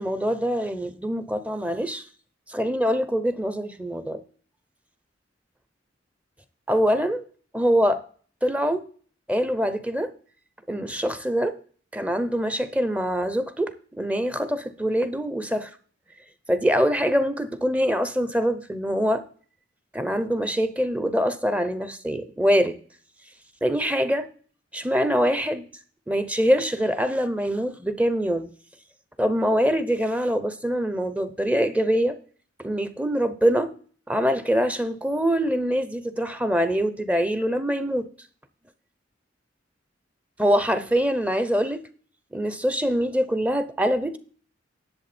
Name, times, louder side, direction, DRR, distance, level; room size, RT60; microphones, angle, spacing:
voice 1, 0.0-2.0 2.5-4.2 6.7-7.2 7.5-8.0 8.4-8.9 9.3-10.1 10.7-11.6 11.9-15.7 16.5-19.2 19.9-22.8 23.6-24.3 24.7-25.7 26.1-28.5 29.2-32.2 32.6-33.7 34.1-38.1 40.4-41.9 42.3-44.2, equal, 5° right, 0.7 m, -24 dB
10.5 x 7.4 x 4.3 m
head